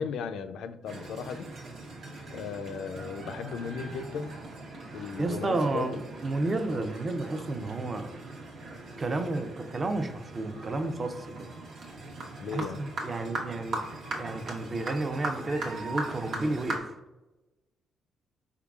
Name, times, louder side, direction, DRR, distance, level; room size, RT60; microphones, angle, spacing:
voice 1, 0.0-1.5 2.3-4.4 4.9-5.9 12.4-12.8, left 6 dB, 80° left, 9 dB, 0.3 m, -36 dB
sound 1, 0.9-16.8, right 2 dB, 65° right, 0.8 m, -40 dB
voice 2, 5.0-8.1 9.0-11.5 12.5-13.8 14.2-16.9, right 2 dB, 30° right, 8 dB, 0.4 m, -32 dB
4.6 x 3.6 x 2.3 m, 1.0 s
cardioid pair, 90°, 0 cm